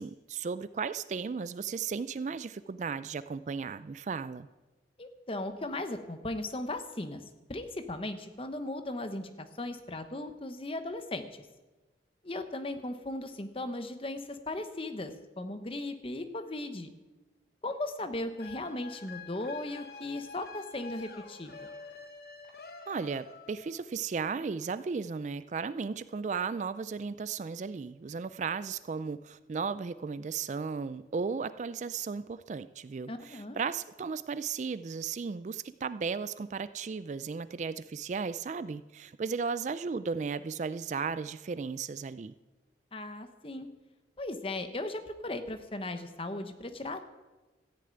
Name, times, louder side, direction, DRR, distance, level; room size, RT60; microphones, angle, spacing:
voice 1, 0.0-4.5 22.9-42.3, right 5 dB, 40° right, 15 dB, 0.3 m, -35 dB
voice 2, 5.0-7.2 7.5-11.3 12.2-16.9 17.6-21.7 33.1-33.6 42.9-43.7 44.2-47.0, left 2 dB, 30° left, 8 dB, 0.9 m, -37 dB
sound 1, 18.4-23.9, left 4 dB, 55° left, 1.2 m, -48 dB
14.0 x 6.7 x 8.8 m, 1.2 s
head